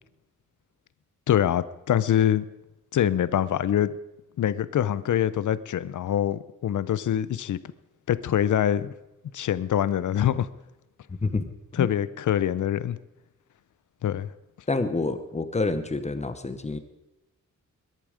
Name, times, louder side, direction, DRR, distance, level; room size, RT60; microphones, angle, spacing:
voice 1, 1.3-2.5 2.9-3.9 4.4-7.6 8.1-8.9 9.3-10.5 11.8-13.0 14.0-14.3, left 10 dB, 70° left, 17 dB, 0.6 m, -24 dB
voice 2, 11.1-11.9 14.7-16.8, left 3 dB, 20° left, 10 dB, 1.0 m, -28 dB
22.0 x 11.0 x 5.0 m, 0.94 s
wide cardioid pair, 180°, 31 cm